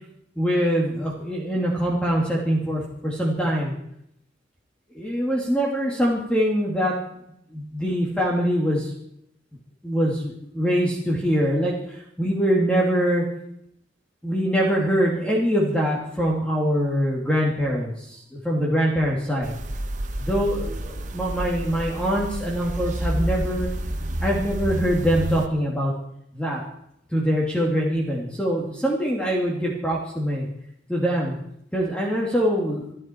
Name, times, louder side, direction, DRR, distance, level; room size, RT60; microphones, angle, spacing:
voice 1, 0.4-3.7 4.9-6.9 7.5-8.9 9.8-13.2 14.2-19.5 20.2-23.7 24.2-25.9 26.3-26.6 27.1-30.5 30.9-31.4 31.7-32.9, equal, 5° left, -3 dB, 2.5 m, -23 dB
sound 1, 19.4-25.5, right 1 dB, 40° right, 1.2 m, -29 dB
26.5 x 11.5 x 4.5 m, 0.77 s
head